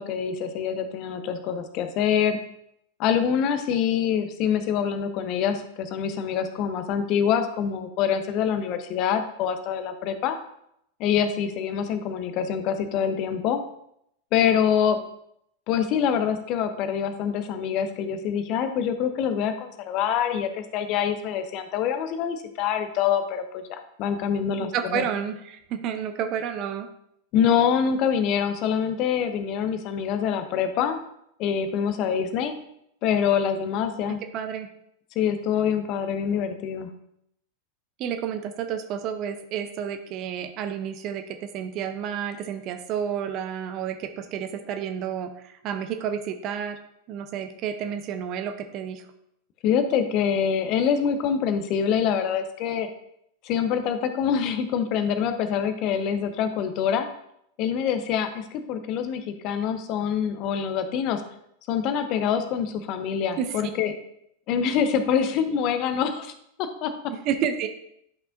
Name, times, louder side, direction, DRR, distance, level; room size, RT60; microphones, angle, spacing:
voice 1, 0.0-2.4 3.0-10.4 11.0-13.6 14.3-15.0 15.7-25.1 27.3-31.0 31.4-32.5 33.0-34.2 35.2-36.9 49.6-52.9 53.4-57.1 57.6-61.2 61.7-63.9 64.5-66.3 66.6-67.1, left 8 dB, 40° left, 9 dB, 0.8 m, -25 dB
voice 2, 24.6-26.9 34.1-34.7 38.0-46.8 47.1-49.1 63.4-63.5 67.2-67.7, right 8 dB, 40° right, 8 dB, 0.6 m, -30 dB
10.5 x 5.6 x 2.6 m, 0.75 s
figure-of-eight pair, 90°, 0 cm